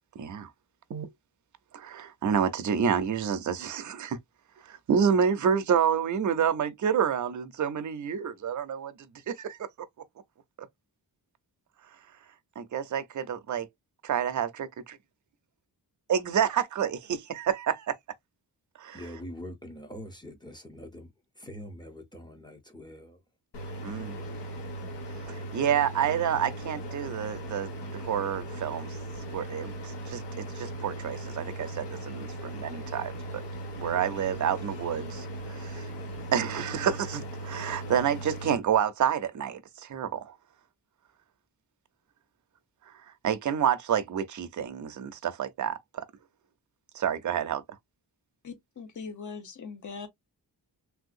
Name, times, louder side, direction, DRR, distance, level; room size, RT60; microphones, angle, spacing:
voice 1, 0.2-0.5 0.9-1.1 1.7-4.2 4.6-8.9 9.3-9.9 12.6-13.7 14.1-14.5 16.1-18.0 18.8-19.0 23.8-24.2 25.2-33.4 33.8-35.9 36.3-40.3 43.2-46.1 46.9-47.6, right 8 dB, 45° right, 0.5 m, -29 dB
voice 2, 18.9-21.1 21.4-23.2, equal, 10° left, 0.7 m, -43 dB
sound 1, 23.5-38.6, right 1 dB, 75° left, 1.4 m, -38 dB
voice 3, 48.4-50.1, left 5 dB, 45° left, 0.8 m, -41 dB
3.4 x 2.7 x 2.4 m
wide cardioid pair, 175°, 42 cm